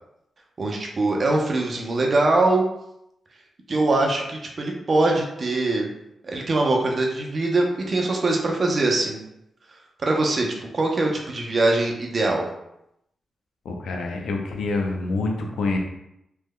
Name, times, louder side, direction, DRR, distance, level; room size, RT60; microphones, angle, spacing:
voice 1, 0.6-2.6 3.7-5.9 6.2-9.2 10.0-10.5 10.7-12.4, right 2 dB, 55° right, 1 dB, 0.7 m, -22 dB
voice 2, 13.6-15.8, left 3 dB, 85° left, 2 dB, 0.6 m, -26 dB
3.4 x 3.1 x 2.2 m, 0.81 s
cardioid pair, 50°, 0 cm